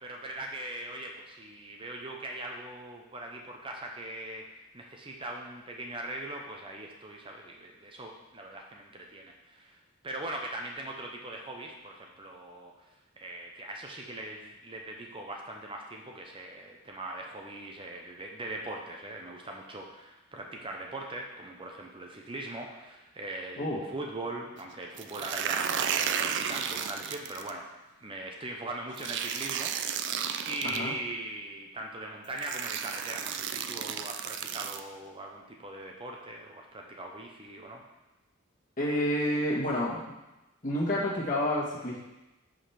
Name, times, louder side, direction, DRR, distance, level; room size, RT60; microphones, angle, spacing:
voice 1, 0.0-9.8 10.0-12.7 13.2-27.7 28.0-37.8, right 1 dB, 25° right, 1 dB, 0.7 m, -40 dB
sound 1, 25.0-27.5 29.0-30.8 31.8-31.9 32.4-34.8, right 8 dB, 60° right, 0.4 m, -33 dB
voice 2, 38.8-40.1 40.6-42.0, left 1 dB, 40° left, -5 dB, 1.5 m, -29 dB
5.1 x 5.0 x 5.8 m, 1.0 s
head